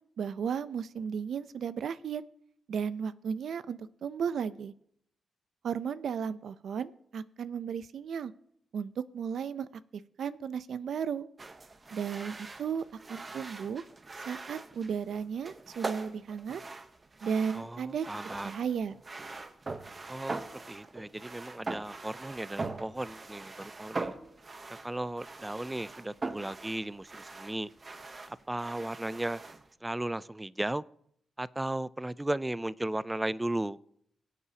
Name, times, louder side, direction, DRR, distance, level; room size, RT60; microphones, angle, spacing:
voice 1, 0.2-2.2 2.7-4.7 5.6-8.3 8.7-9.7 10.2-11.3 11.9-12.8 13.1-13.8 14.3-16.6 17.2-18.1 18.4-18.9, right 7 dB, 75° right, 0.5 m, -34 dB
sound 1, 11.4-29.7, right 3 dB, 35° right, 0.9 m, -42 dB
voice 2, 17.6-18.5 20.1-24.2 24.8-27.7 28.3-29.4 29.8-30.8 31.4-33.8, right 1 dB, 15° right, 0.3 m, -35 dB
22.5 x 8.2 x 2.8 m
cardioid pair, 90°, 0 cm